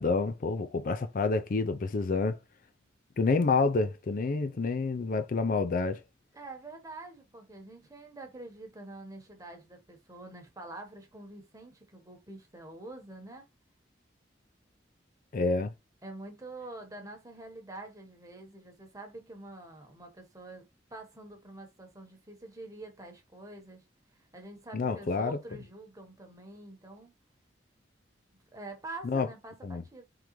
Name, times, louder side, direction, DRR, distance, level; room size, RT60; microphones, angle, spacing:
voice 1, 0.0-2.4 3.2-6.0 15.3-15.7 24.7-25.4 29.0-29.3 29.6-29.8, left 3 dB, 50° left, 0.4 m, -28 dB
voice 2, 6.3-13.4 16.0-23.8 24.3-27.1 28.5-30.0, right 2 dB, 20° right, 1.0 m, -46 dB
3.8 x 3.3 x 3.1 m
head